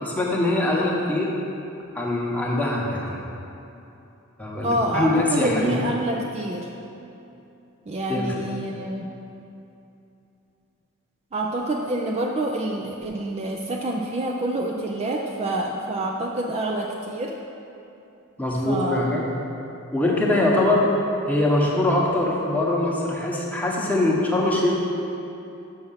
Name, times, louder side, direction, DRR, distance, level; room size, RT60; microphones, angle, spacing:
voice 1, 0.0-1.3 1.9-3.2 4.4-5.7 8.1-8.3 18.4-19.3 19.9-20.8 21.3-24.7, left 2 dB, 5° left, -3 dB, 1.0 m, -22 dB
voice 2, 4.6-6.7 7.9-9.1 11.3-17.4 18.6-19.2, right 1 dB, 30° right, 0 dB, 0.4 m, -27 dB
6.3 x 5.9 x 5.7 m, 2.8 s
head